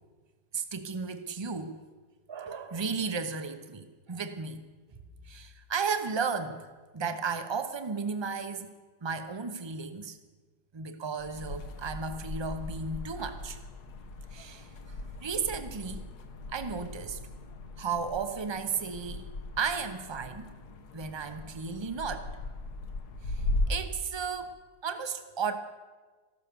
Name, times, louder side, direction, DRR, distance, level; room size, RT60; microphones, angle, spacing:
voice 1, 0.5-1.8 2.3-4.6 5.2-6.7 6.9-8.7 9.0-10.2 10.7-13.6 14.3-16.0 16.5-17.2 17.8-19.3 19.6-20.5 20.9-22.3 23.2-24.5 24.8-25.6, right 5 dB, 25° right, 9 dB, 0.7 m, -34 dB
sound 1, 11.2-23.9, left 2 dB, 75° left, 1.6 m, -38 dB
14.5 x 12.0 x 6.9 m, 1.3 s
omnidirectional pair, 1.7 m